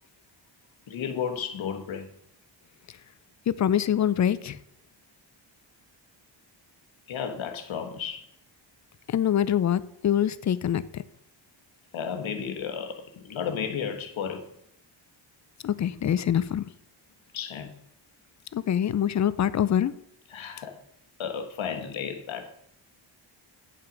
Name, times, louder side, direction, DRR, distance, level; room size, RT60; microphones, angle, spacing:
voice 1, 0.9-2.1 7.1-8.2 11.9-14.5 17.3-17.7 20.3-20.7 21.2-22.5, left 7 dB, 85° left, 1.4 m, -33 dB
voice 2, 3.5-4.6 9.1-11.0 15.6-16.7 18.5-19.9, left 9 dB, 40° left, 0.4 m, -25 dB
9.4 x 5.7 x 5.2 m
wide cardioid pair, 170°, 46 cm